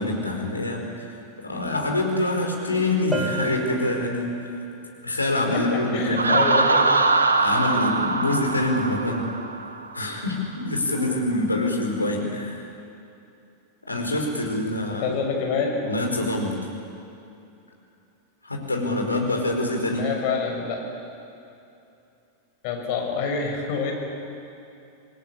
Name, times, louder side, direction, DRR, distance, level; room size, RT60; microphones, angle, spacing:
voice 1, 0.0-4.3 5.0-6.3 7.4-9.2 9.9-12.7 13.9-15.1 15.8-16.6 18.4-20.0, left 1 dB, 80° left, 1 dB, 5.0 m, -25 dB
Bell, 3.1-4.7, right 2 dB, 5° right, 2.8 m, -32 dB
voice 2, 5.5-6.9 15.0-15.8 19.9-20.9 22.6-23.9, left 5 dB, 45° left, 2 dB, 6.5 m, -27 dB
Laughter, 6.2-9.8, right 3 dB, 75° right, 1.7 m, -22 dB
27.5 x 20.0 x 9.9 m, 2.7 s
figure-of-eight pair, 90°, 0 cm